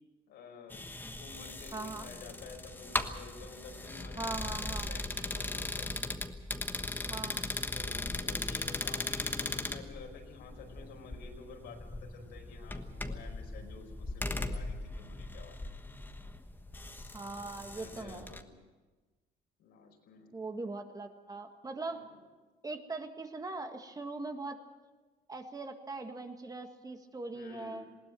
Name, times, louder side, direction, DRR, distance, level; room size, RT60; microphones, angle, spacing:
voice 1, 0.3-0.9 1.2-5.9 7.7-15.7 17.7-18.7 19.6-20.3 21.9-22.2 27.3-28.0, left 4 dB, 80° left, 2 dB, 5.1 m, -51 dB
sound 1, 0.7-18.4, left 2 dB, 10° left, 1.3 m, -38 dB
voice 2, 1.7-2.1 4.2-4.9 7.1-7.5 17.1-18.3 20.3-22.0 22.6-24.6 25.3-27.9, right 3 dB, 20° right, 5 dB, 1.8 m, -41 dB
20.0 x 17.5 x 7.6 m, 1.3 s
cardioid pair, 110°, 17 cm